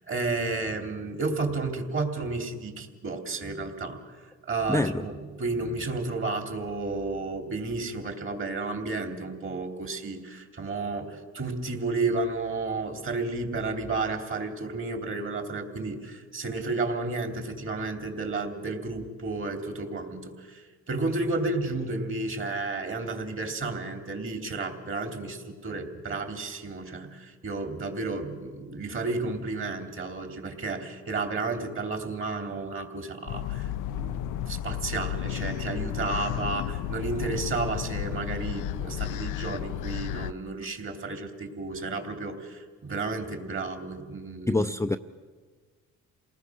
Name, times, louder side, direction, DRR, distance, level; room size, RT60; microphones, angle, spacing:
voice 1, 0.0-4.0 4.4-44.6, right 3 dB, 45° right, 4 dB, 3.3 m, -32 dB
voice 2, 4.7-5.0 44.5-45.0, left 2 dB, 10° left, 7 dB, 0.6 m, -25 dB
sound 1, 33.3-40.3, left 11 dB, 90° left, 0.6 m, -33 dB
28.0 x 19.5 x 6.4 m, 1.5 s
cardioid pair, 90°, 30 cm